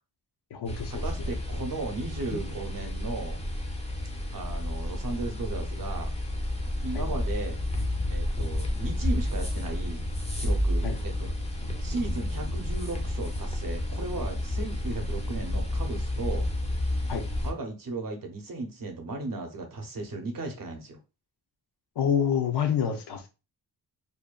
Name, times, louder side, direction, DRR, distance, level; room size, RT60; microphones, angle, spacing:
voice 1, 0.5-1.3 6.9-7.0 10.8-11.0 17.1-17.2 22.0-23.3, left 8 dB, 70° left, 4 dB, 0.6 m, -28 dB
sound 1, 0.7-17.5, left 1 dB, 15° left, 0.4 m, -30 dB
voice 2, 1.0-3.4 4.3-6.1 6.8-7.6 8.1-10.1 10.4-11.3 11.8-16.5 17.4-21.0, right 3 dB, 50° right, 4 dB, 0.7 m, -36 dB
2.6 x 2.1 x 2.3 m, 0.29 s
wide cardioid pair, 135°, 43 cm